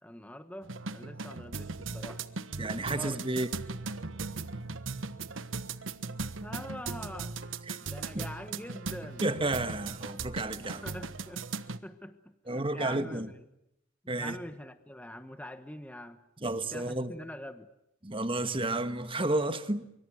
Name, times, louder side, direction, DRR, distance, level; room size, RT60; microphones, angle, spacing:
voice 1, 0.0-2.2 2.8-3.2 6.4-7.4 7.9-9.2 10.8-11.4 11.8-13.4 14.1-16.2 16.7-17.7, left 1 dB, 5° left, 1.2 m, -44 dB
sound 1, 0.6-11.8, right 4 dB, 75° right, 1.3 m, -38 dB
voice 2, 2.6-3.5 7.7-7.8 8.1-8.2 9.2-10.8 12.5-13.3 14.1-14.4 16.4-17.1 18.0-19.9, right 2 dB, 25° right, 1.6 m, -31 dB
25.0 x 24.5 x 9.3 m
head